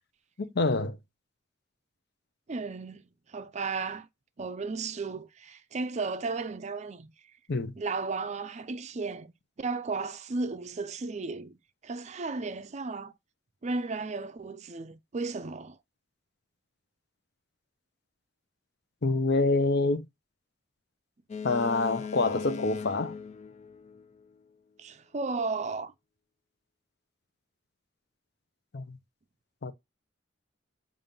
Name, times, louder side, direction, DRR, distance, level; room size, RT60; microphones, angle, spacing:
voice 1, 0.4-1.0 7.5-7.7 19.0-20.1 21.4-23.1 28.7-29.0 29.6-29.7, left 3 dB, 60° left, 0.7 m, -26 dB
voice 2, 2.5-4.1 4.4-7.1 7.8-9.3 9.6-11.6 11.8-13.1 13.6-15.8 24.8-25.9, right 4 dB, 35° right, 0.4 m, -34 dB
Boat Water vehicle, 21.3-24.4, left 6 dB, 35° left, 0.4 m, -39 dB
7.2 x 2.6 x 5.3 m
head